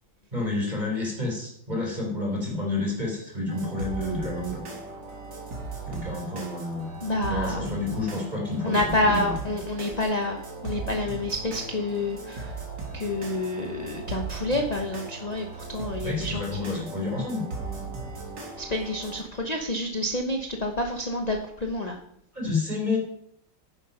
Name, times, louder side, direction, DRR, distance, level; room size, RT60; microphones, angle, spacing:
voice 1, 0.3-4.6 5.9-6.9 7.3-9.3 16.0-17.4 22.3-23.0, left 2 dB, 20° right, -1 dB, 3.8 m, -29 dB
sound 1, 3.5-19.2, right 3 dB, 65° right, 2.8 m, -37 dB
voice 2, 7.0-7.6 8.6-12.5 12.9-16.7 18.6-22.0, left 2 dB, 40° left, 3 dB, 0.6 m, -28 dB
10.0 x 7.6 x 5.5 m, 0.69 s
omnidirectional pair, 2.1 m